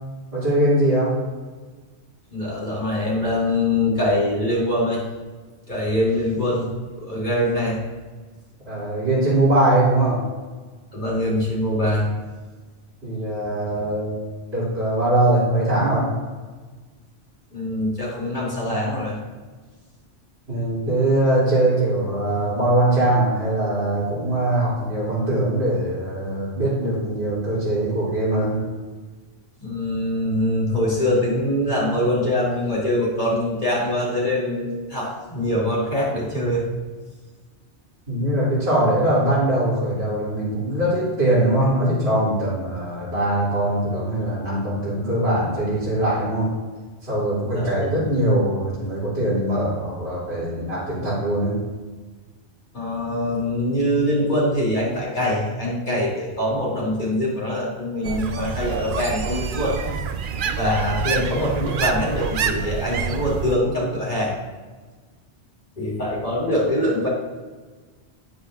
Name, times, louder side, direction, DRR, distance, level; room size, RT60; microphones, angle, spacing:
voice 1, 0.3-1.1 8.6-10.2 13.0-14.2 14.5-16.1 20.5-28.6 38.1-46.5 47.0-51.6, right 1 dB, 75° right, -10 dB, 3.4 m, -21 dB
voice 2, 2.3-5.0 5.7-6.7 7.0-7.8 10.9-12.1 17.5-19.2 29.6-36.6 47.5-47.7 52.7-59.8 60.6-64.3 65.8-67.1, left 1 dB, 45° left, -6 dB, 3.0 m, -23 dB
sound 1, 58.0-63.5, right 6 dB, 55° right, 0.7 m, -27 dB
10.5 x 9.7 x 2.5 m, 1.3 s
omnidirectional pair, 1.1 m